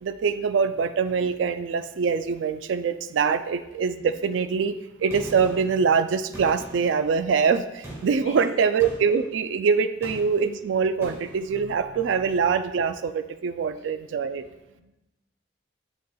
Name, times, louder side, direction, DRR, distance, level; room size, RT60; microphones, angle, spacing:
voice 1, 0.0-4.7 5.0-14.4, right 5 dB, 85° right, 10 dB, 0.3 m, -24 dB
Gunshot gunfire, 5.1-5.8 6.3-7.1 7.8-8.2 8.8-9.3 10.0-10.5 11.0-11.4, right 1 dB, 15° right, 1.7 m, -40 dB
voice 2, 8.2-8.7 14.1-14.8, right 1 dB, 35° left, -3 dB, 1.8 m, -44 dB
7.0 x 6.4 x 2.3 m, 0.95 s
head